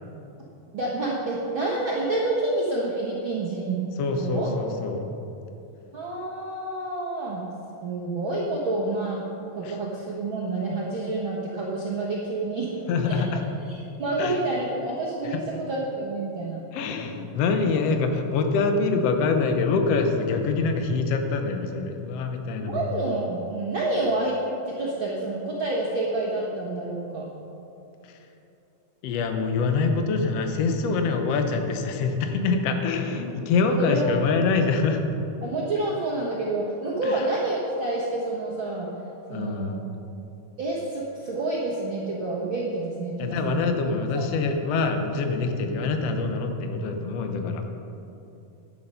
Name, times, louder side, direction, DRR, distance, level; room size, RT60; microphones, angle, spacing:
voice 1, 0.7-3.8 4.2-4.5 5.9-7.5 7.8-9.2 9.5-12.8 13.0-13.2 13.7-16.6 22.6-24.4 24.6-27.3 33.8-34.1 35.4-38.9 39.3-39.8 40.6-43.7 44.1-44.3, right 2 dB, 65° right, -4 dB, 1.2 m, -28 dB
voice 2, 4.0-5.1 9.6-9.8 12.9-13.4 14.2-14.4 15.2-15.4 16.7-22.9 28.0-28.1 29.0-35.0 37.0-37.2 39.3-39.8 43.2-47.6, left 4 dB, 75° left, 5 dB, 1.4 m, -25 dB
11.5 x 9.4 x 5.6 m, 2.8 s
omnidirectional pair, 4.0 m